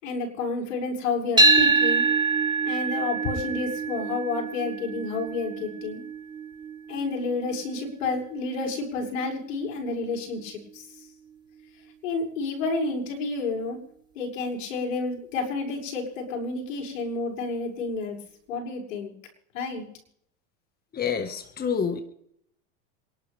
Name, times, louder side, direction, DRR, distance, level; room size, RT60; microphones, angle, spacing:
voice 1, 0.0-2.0 2.6-6.0 6.9-10.8 12.0-13.8 14.1-18.2 18.5-19.1 19.5-19.8, left 3 dB, 85° left, 0 dB, 6.8 m, -30 dB
sound 1, 1.4-9.6, right 3 dB, 10° right, 2.7 m, -26 dB
voice 2, 20.9-22.0, left 6 dB, 25° left, 7 dB, 1.8 m, -27 dB
28.0 x 12.0 x 3.6 m, 0.69 s
supercardioid pair, 115°, 38 cm